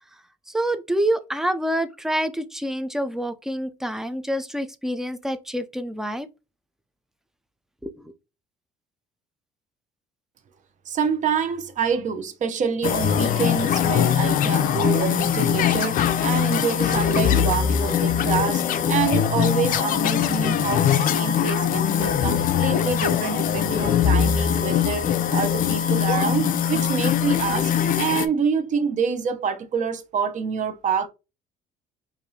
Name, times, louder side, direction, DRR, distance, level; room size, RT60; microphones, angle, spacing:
voice 1, 0.5-6.3 7.8-7.9, right 1 dB, 5° right, 0.4 m, -27 dB
voice 2, 10.9-31.1, right 6 dB, 45° right, 0.8 m, -27 dB
sound 1, 12.8-28.3, left 8 dB, 55° left, 0.5 m, -22 dB
4.7 x 2.6 x 2.7 m
cardioid pair, 110°, 17 cm